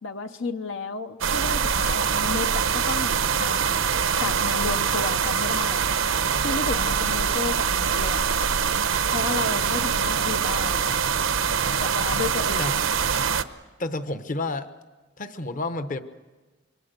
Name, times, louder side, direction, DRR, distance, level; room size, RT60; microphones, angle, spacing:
voice 1, 0.0-3.8 4.2-5.9 6.4-8.2 9.1-10.8 11.8-12.6, left 4 dB, 65° left, 7 dB, 0.8 m, -32 dB
sound 1, 1.2-13.4, right 6 dB, 85° right, 0.9 m, -24 dB
voice 2, 13.8-14.7 15.2-16.0, left 2 dB, 40° left, 10 dB, 1.0 m, -30 dB
26.0 x 23.5 x 6.8 m, 1.3 s
head